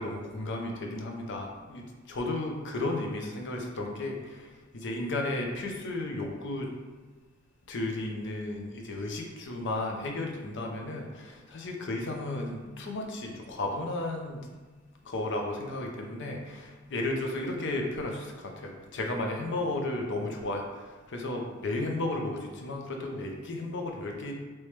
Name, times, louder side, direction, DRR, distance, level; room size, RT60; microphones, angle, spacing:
voice 1, 0.0-6.7 7.7-14.5 15.0-24.3, left 2 dB, 60° left, 1 dB, 0.6 m, -34 dB
3.1 x 3.0 x 3.2 m, 1.3 s
head